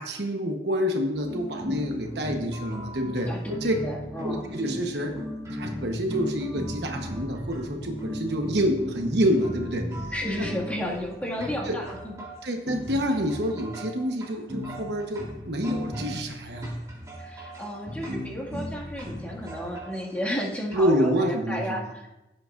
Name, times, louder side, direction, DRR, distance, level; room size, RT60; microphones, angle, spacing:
voice 1, 0.0-3.3 3.6-3.8 4.2-5.2 5.5-9.9 10.4-10.5 11.7-11.8 12.4-16.7 20.7-21.9, equal, 65° right, 4 dB, 1.1 m, -27 dB
sound 1, 1.1-20.8, left 1 dB, 20° right, 3.1 m, -36 dB
voice 2, 3.8-4.4 10.1-12.1 17.2-22.1, equal, 10° left, -4 dB, 2.0 m, -32 dB
16.0 x 7.7 x 2.5 m, 0.95 s
head